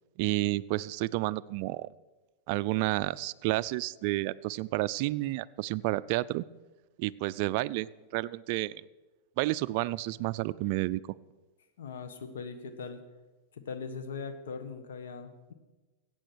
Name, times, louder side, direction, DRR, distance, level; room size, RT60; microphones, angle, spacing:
voice 1, 0.2-1.9 2.5-6.4 7.0-8.8 9.4-11.0, right 18 dB, 55° right, 14 dB, 0.4 m, -30 dB
voice 2, 11.8-13.0 13.5-15.5, left 5 dB, 90° left, 9 dB, 1.4 m, -40 dB
15.0 x 8.5 x 6.3 m, 1.2 s
supercardioid pair, 130°, 0 cm